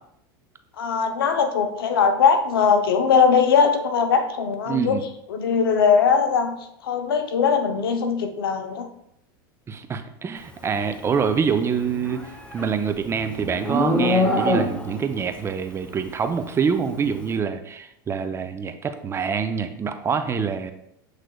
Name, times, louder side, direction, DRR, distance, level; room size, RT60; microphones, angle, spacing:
voice 1, 0.8-5.0 5.3-8.9, left 6 dB, 85° left, 7 dB, 0.6 m, -20 dB
voice 2, 4.7-5.0 9.7-12.2 12.5-20.7, right 6 dB, 20° right, 8 dB, 0.5 m, -25 dB
Livestock farm animals working animals, 11.8-15.1, left 1 dB, 10° left, 0.7 m, -24 dB
7.5 x 3.2 x 2.2 m, 0.76 s
hypercardioid pair, 100°, 12 cm